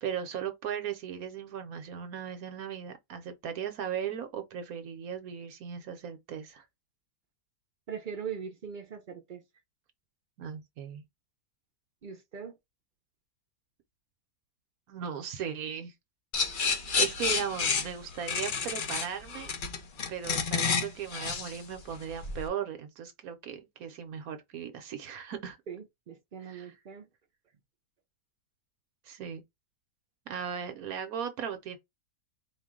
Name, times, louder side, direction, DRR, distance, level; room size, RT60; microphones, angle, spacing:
voice 1, 0.0-6.6 10.4-11.0 14.9-15.9 16.9-19.5 20.1-25.6 26.4-26.7 29.1-29.4 30.3-31.8, right 8 dB, 65° right, 1.1 m, -37 dB
voice 2, 7.9-9.4 12.0-12.5 25.7-27.0, right 7 dB, 85° right, 0.4 m, -41 dB
sound 1, 16.3-22.5, left 5 dB, 55° left, 0.5 m, -30 dB
4.4 x 2.2 x 3.6 m
omnidirectional pair, 1.8 m